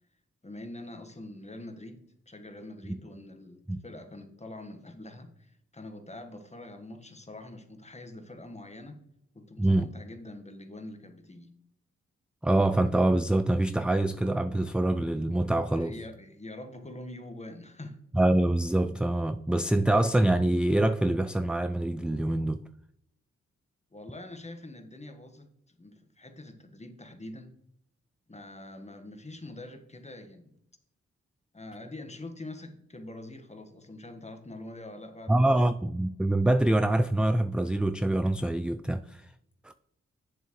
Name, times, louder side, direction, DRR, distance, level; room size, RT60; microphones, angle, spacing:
voice 1, 0.4-2.0 2.3-9.0 9.3-11.5 15.7-18.0 23.9-27.5 28.3-30.5 31.5-35.6, left 1 dB, 20° left, 1.4 m, -44 dB
voice 2, 12.4-15.9 18.1-22.6 35.3-39.3 39.6-39.7, right 1 dB, 5° right, 0.3 m, -25 dB
8.3 x 7.1 x 3.1 m
cardioid pair, 50°, 30 cm